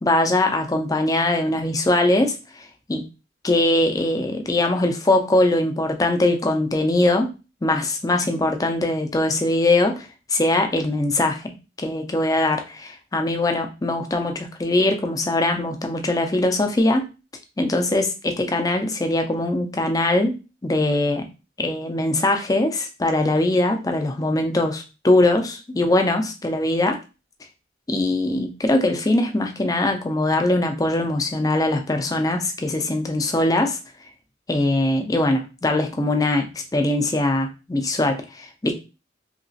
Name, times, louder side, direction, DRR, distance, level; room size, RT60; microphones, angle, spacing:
voice 1, 0.0-2.3 2.9-3.0 3.4-7.3 7.6-17.0 17.6-20.3 20.6-21.2 21.6-27.0 27.9-33.8 34.5-38.7, left 2 dB, 20° left, 5 dB, 0.4 m, -21 dB
2.9 x 2.9 x 2.7 m, 0.31 s
head